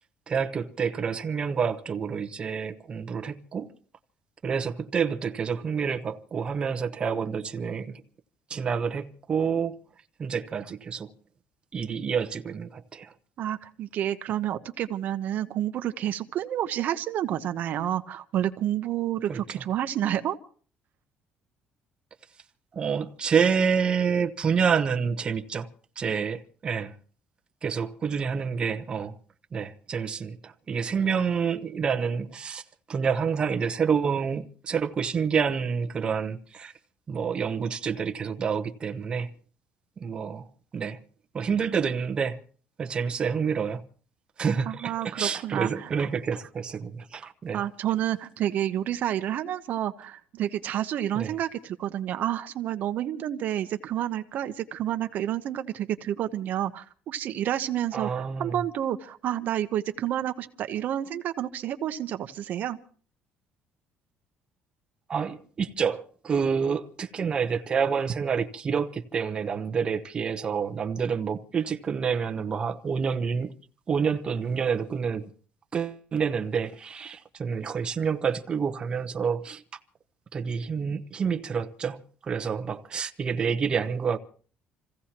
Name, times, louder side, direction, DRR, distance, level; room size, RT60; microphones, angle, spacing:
voice 1, 0.3-3.7 4.4-8.0 8.5-9.8 10.2-11.1 11.7-13.1 19.3-19.4 22.7-25.7 26.0-26.9 27.6-29.1 29.5-32.6 32.9-36.7 37.1-39.3 40.0-40.4 40.7-41.0 41.3-42.4 42.8-43.8 44.4-47.6 51.1-51.3 57.9-58.6 65.1-73.5 73.9-75.3 75.7-79.6 80.3-84.2, right 6 dB, 25° right, 0.9 m, -28 dB
voice 2, 13.4-20.4 44.7-45.9 47.5-62.8, right 11 dB, 55° right, 0.9 m, -29 dB
28.0 x 16.0 x 3.0 m
cardioid pair, 155°, 4 cm